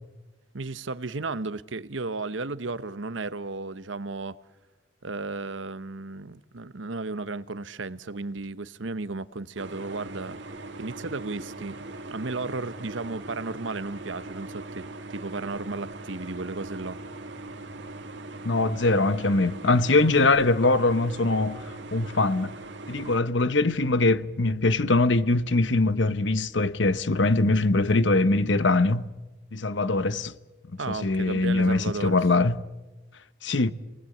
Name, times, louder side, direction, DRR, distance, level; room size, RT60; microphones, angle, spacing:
voice 1, 0.5-4.4 5.0-10.4 10.8-11.8 12.1-17.0 30.8-32.2, right 3 dB, 80° right, 1.0 m, -34 dB
sound 1, 9.6-23.2, right 2 dB, 65° right, 2.4 m, -40 dB
voice 2, 18.4-21.6 21.9-22.5 22.9-29.1 29.5-30.3 30.9-32.6 33.4-33.7, left 2 dB, 70° left, 1.0 m, -22 dB
30.0 x 19.5 x 8.6 m
head